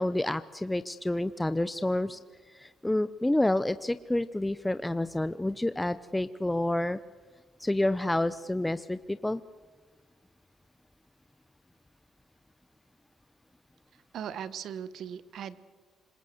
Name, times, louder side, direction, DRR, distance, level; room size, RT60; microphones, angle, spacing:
voice 1, 0.0-2.2 2.5-7.0 7.6-9.4, left 1 dB, 10° left, 13 dB, 0.6 m, -29 dB
voice 2, 14.1-15.6, right 8 dB, 70° right, 15 dB, 1.2 m, -38 dB
26.0 x 21.5 x 7.9 m, 1.4 s
cardioid pair, 90°, 0 cm